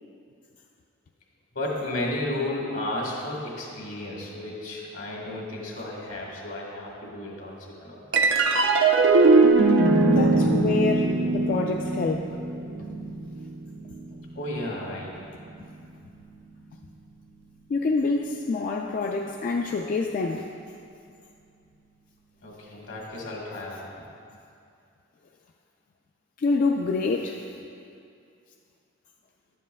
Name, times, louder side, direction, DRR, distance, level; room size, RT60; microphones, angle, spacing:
voice 1, 1.5-8.3 14.3-15.1 22.4-23.9, left 1 dB, 75° left, -3 dB, 1.6 m, -33 dB
sound 1, 8.1-14.8, right 3 dB, 70° right, 0.4 m, -21 dB
voice 2, 10.0-12.4 17.7-20.5 26.4-27.4, left 3 dB, 45° left, 1 dB, 0.3 m, -26 dB
11.0 x 7.4 x 2.2 m, 2.5 s
head